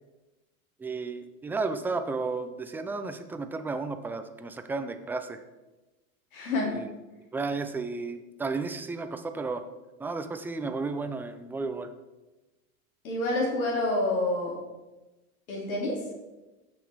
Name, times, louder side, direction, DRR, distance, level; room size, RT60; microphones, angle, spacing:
voice 1, 0.8-5.4 6.6-6.9 7.3-9.6 10.0-11.9, right 3 dB, 5° right, 8 dB, 0.4 m, -33 dB
voice 2, 6.3-6.8 13.0-14.5 15.5-16.0, left 2 dB, 75° left, -2 dB, 3.6 m, -28 dB
15.5 x 6.2 x 4.6 m, 1.1 s
supercardioid pair, 130°, 42 cm